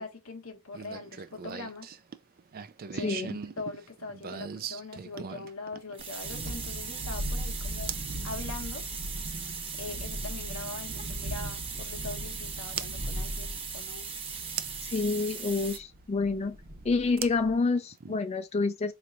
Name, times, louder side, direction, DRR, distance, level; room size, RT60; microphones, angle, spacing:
voice 1, 0.0-1.9 2.9-3.2 3.6-8.8 9.8-14.1, left 3 dB, 85° left, 1.1 m, -42 dB
sound 1, 0.7-6.7 7.9-8.1 10.0-10.1 12.8-12.9 14.6-15.0 17.2-18.2, right 7 dB, 45° right, 0.4 m, -39 dB
voice 2, 3.0-3.4 14.8-16.6 16.8-18.9, left 3 dB, 30° left, 0.4 m, -28 dB
sound 2, 5.9-15.8, right 6 dB, 25° right, 1.0 m, -39 dB
Thunderstorm, 6.0-17.6, equal, 85° right, 1.1 m, -39 dB
4.2 x 3.1 x 2.5 m
head